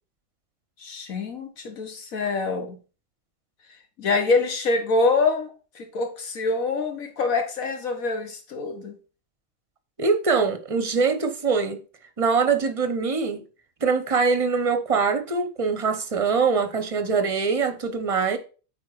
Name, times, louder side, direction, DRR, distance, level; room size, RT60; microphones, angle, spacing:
voice 1, 0.8-2.8 4.0-5.5 5.7-9.0, left 3 dB, 90° left, 1.8 m, -25 dB
voice 2, 10.0-11.8 12.2-13.4 13.8-18.4, right 5 dB, 30° right, 0.7 m, -23 dB
8.9 x 3.7 x 4.7 m
omnidirectional pair, 1.4 m